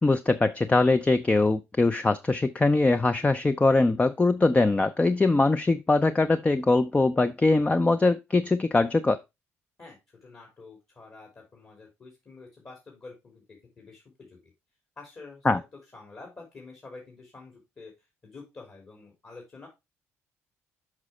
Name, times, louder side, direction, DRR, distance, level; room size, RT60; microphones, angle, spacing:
voice 1, 0.0-9.2 15.4-15.6, left 3 dB, 20° left, 11 dB, 0.5 m, -22 dB
voice 2, 9.8-14.5 15.0-15.6 15.9-17.9 18.2-19.7, left 3 dB, 40° left, -1 dB, 3.0 m, -48 dB
6.1 x 5.5 x 4.2 m, 0.23 s
hypercardioid pair, 50°, 7 cm